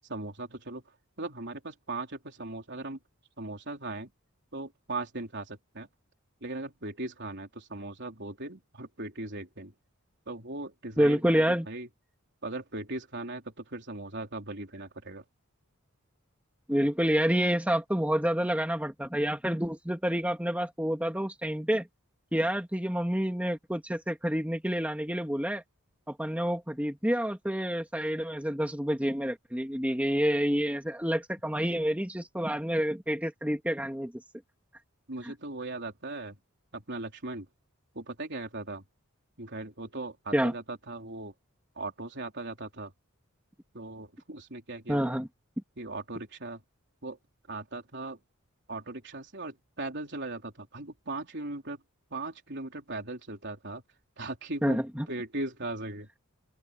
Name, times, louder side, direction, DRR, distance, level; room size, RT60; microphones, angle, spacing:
voice 1, 0.1-0.8 1.2-3.0 3.4-4.1 4.5-5.9 6.4-9.7 10.3-11.9 12.4-15.2 35.1-36.4 36.7-37.5 37.9-38.8 39.4-41.3 41.8-42.9 43.7-45.2 45.8-46.6 47.0-47.2 47.5-48.2 48.7-51.8 52.1-53.8 54.2-54.8 55.1-56.2, right 2 dB, 55° right, 3.9 m, -38 dB
voice 2, 11.0-11.7 16.7-21.9 22.3-25.6 26.1-34.1 40.3-40.5 44.9-45.3 54.6-55.1, equal, 5° right, 2.4 m, -28 dB
open air
head